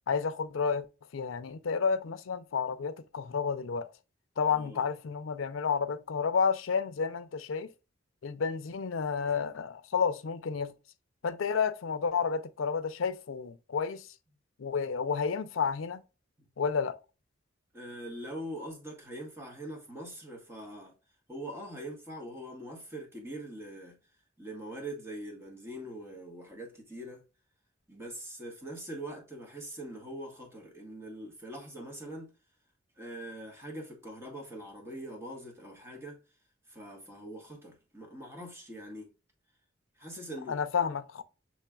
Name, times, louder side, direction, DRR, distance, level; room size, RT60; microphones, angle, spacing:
voice 1, 0.1-0.9 1.1-3.9 4.4-7.7 8.2-10.7 11.2-14.1 14.6-16.0 16.6-17.0 40.5-41.2, left 6 dB, 85° left, 0.5 m, -31 dB
voice 2, 4.5-4.9 17.7-20.9 21.3-24.0 24.4-27.2 27.9-32.3 33.0-36.2 36.7-39.1 40.0-40.6, right 1 dB, 15° right, 1.3 m, -43 dB
7.1 x 3.1 x 2.3 m
head